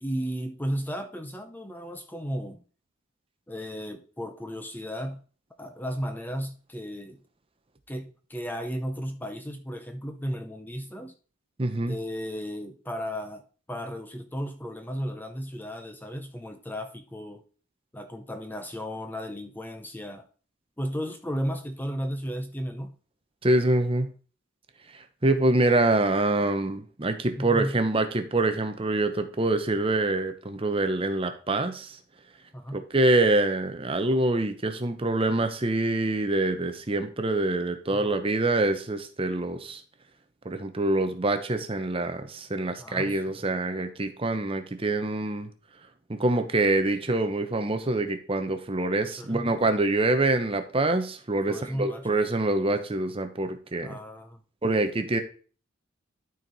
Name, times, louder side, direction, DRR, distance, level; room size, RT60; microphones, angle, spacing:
voice 1, 0.0-2.6 3.5-5.2 5.6-7.2 7.9-11.1 11.8-13.4 13.7-17.4 17.9-20.3 20.8-23.0 27.4-27.8 32.5-32.8 37.9-38.2 42.8-43.2 49.0-49.5 51.5-52.2 53.8-54.4, equal, 10° left, 6 dB, 0.7 m, -34 dB
voice 2, 11.6-11.9 23.4-24.1 25.2-32.0 32.7-39.8 40.4-45.5 46.1-54.0 54.6-55.2, right 2 dB, 25° right, 7 dB, 0.8 m, -25 dB
12.5 x 4.5 x 4.0 m, 0.40 s
head